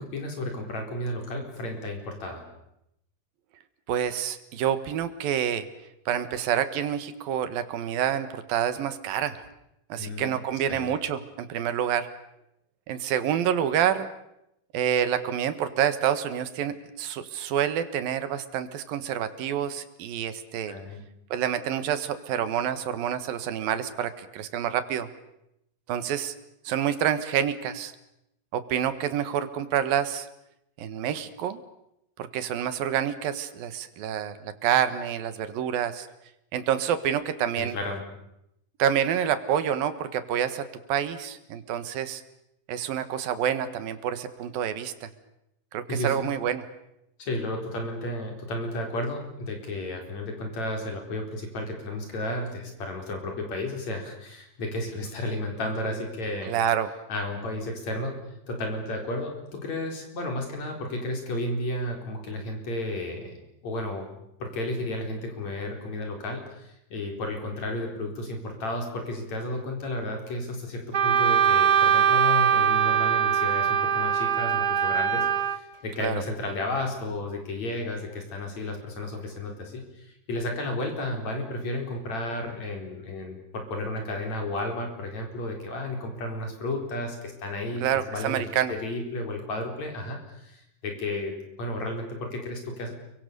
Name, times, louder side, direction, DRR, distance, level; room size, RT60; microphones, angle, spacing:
voice 1, 0.0-2.4 10.0-10.4 10.7-10.9 20.7-21.0 37.6-38.0 45.9-46.2 47.2-56.5 57.1-58.2 58.5-63.4 63.6-64.1 64.4-92.9, left 1 dB, 50° left, 3 dB, 5.4 m, -33 dB
voice 2, 3.9-5.7 6.1-9.4 9.9-12.1 12.9-14.1 14.7-20.8 21.3-25.1 25.9-26.3 26.7-27.9 28.5-30.3 30.8-31.6 32.2-36.1 36.5-37.8 38.8-42.2 42.7-45.1 45.7-46.6 56.5-56.9 76.0-76.2 87.8-88.7, right 9 dB, 90° right, 12 dB, 3.3 m, -27 dB
Wind instrument woodwind instrument, 70.9-75.6, right 9 dB, 65° right, 1.0 m, -22 dB
30.0 x 23.5 x 6.9 m, 0.82 s
omnidirectional pair, 4.0 m